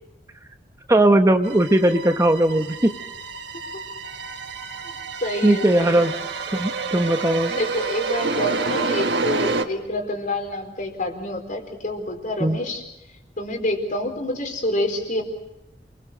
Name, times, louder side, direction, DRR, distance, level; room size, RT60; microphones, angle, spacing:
voice 1, 0.9-2.9 5.4-6.2 6.5-7.5 12.4-12.6, right 1 dB, 20° right, 7 dB, 0.9 m, -18 dB
sound 1, 1.4-9.6, right 4 dB, 70° right, 1.4 m, -28 dB
voice 2, 5.2-6.1 7.5-12.8 13.4-15.2, left 1 dB, 50° left, 5 dB, 4.4 m, -27 dB
28.0 x 21.5 x 6.6 m, 0.89 s
head